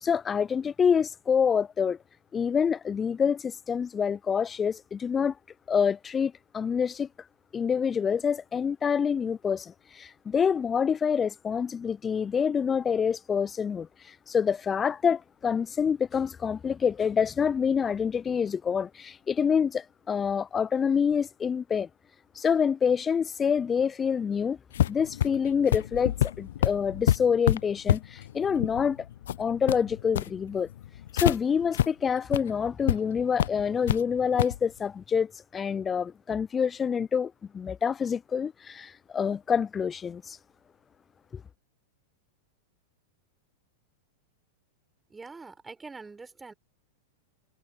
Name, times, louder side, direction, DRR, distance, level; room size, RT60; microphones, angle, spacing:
voice 1, 0.0-2.0 2.3-5.3 5.7-7.1 7.5-21.9 22.4-24.6 24.9-29.1 29.4-30.7 31.1-40.4 41.3-41.4, left 7 dB, 20° left, 0.4 m, -27 dB
sound 1, 24.7-31.4 31.7-31.9 32.2-32.4 32.9-33.0 33.4-34.0 34.4-34.6, left 11 dB, 70° left, 0.6 m, -27 dB
voice 2, 45.1-46.5, right 4 dB, 15° right, 4.3 m, -44 dB
hypercardioid pair, 100°, 0 cm